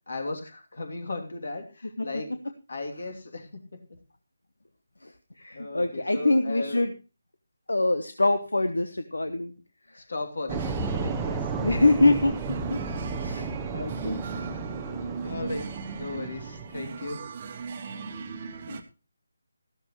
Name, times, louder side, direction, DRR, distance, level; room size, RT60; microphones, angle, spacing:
voice 1, 0.1-2.3 2.7-3.8 5.5-6.9 9.9-11.5 13.3-13.5 14.7-15.6 16.0-17.2, left 2 dB, 60° left, 4 dB, 2.9 m, -36 dB
voice 2, 5.0-6.9 7.7-9.5 9.9-10.0 11.6-13.5 13.7-14.2 18.7-18.8, left 2 dB, 75° left, 10 dB, 1.0 m, -25 dB
sound 1, 10.5-16.8, right 4 dB, 10° right, 0.9 m, -33 dB
sound 2, 10.5-18.8, right 5 dB, 35° right, 1.2 m, -38 dB
14.0 x 12.5 x 3.1 m, 0.33 s
figure-of-eight pair, 155°, 0 cm